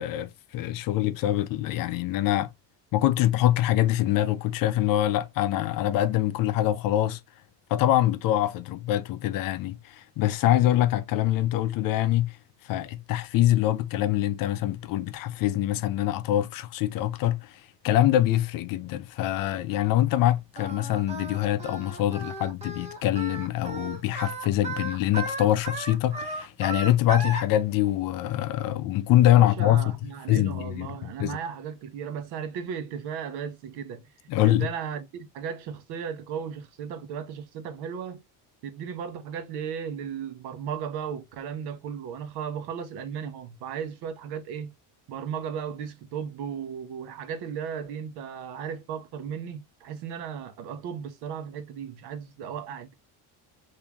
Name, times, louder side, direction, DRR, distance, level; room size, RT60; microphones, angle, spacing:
voice 1, 0.0-2.5 2.9-7.2 7.7-12.4 12.6-29.9 30.3-31.4 34.3-34.7, left 13 dB, 55° left, 0.5 m, -24 dB
Singing, 20.5-27.4, right 2 dB, 15° right, 0.7 m, -35 dB
voice 2, 29.3-34.1 34.4-38.2 38.6-44.7 45.1-52.9, right 7 dB, 65° right, 0.9 m, -35 dB
3.5 x 2.7 x 2.9 m
cardioid pair, 165°, 42 cm